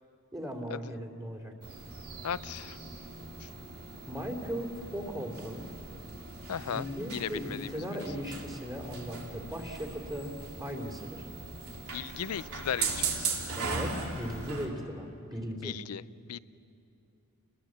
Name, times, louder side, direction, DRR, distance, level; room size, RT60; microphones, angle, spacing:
voice 1, 0.3-1.5 4.1-5.6 6.6-11.3 13.6-15.8, equal, 20° right, 2 dB, 2.8 m, -38 dB
sound 1, 1.6-14.7, right 4 dB, 80° right, 3.2 m, -39 dB
voice 2, 2.2-2.8 3.4-3.5 6.5-6.9 7.1-7.7 11.9-13.3 15.6-16.0 16.3-16.4, left 8 dB, 85° left, 18 dB, 0.5 m, -36 dB
30.0 x 21.0 x 7.5 m, 2.7 s
head